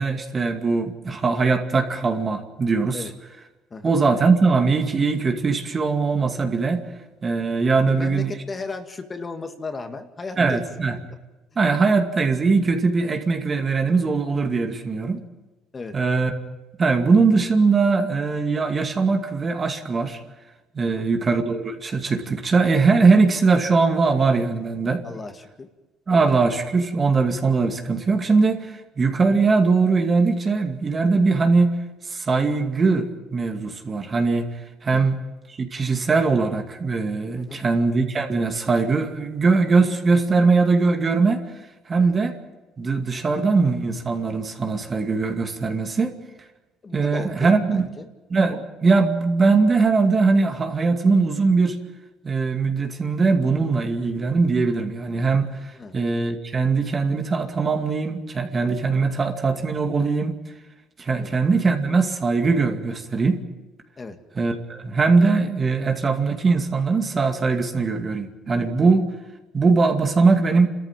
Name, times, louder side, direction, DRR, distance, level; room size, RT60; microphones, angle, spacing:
voice 1, 0.0-3.0 3.8-6.8 7.2-8.3 10.4-11.0 11.6-15.2 15.9-16.3 16.8-20.2 20.7-25.0 26.1-31.8 32.0-34.5 34.8-35.2 35.6-41.4 41.9-42.3 42.8-46.1 46.9-47.9 48.3-51.8 52.2-60.4 61.0-63.4 64.4-69.1 69.5-70.7, right 4 dB, 35° right, 4 dB, 2.3 m, -21 dB
voice 2, 7.9-10.6 15.7-16.0 20.8-21.1 25.0-25.7 26.1-26.3 34.9-35.1 37.3-37.6 42.0-42.1 46.8-48.1 55.7-56.0 61.1-61.3 64.0-64.2, left 4 dB, 30° left, 6 dB, 2.1 m, -35 dB
30.0 x 14.0 x 7.5 m, 1.1 s
supercardioid pair, 90°, 0 cm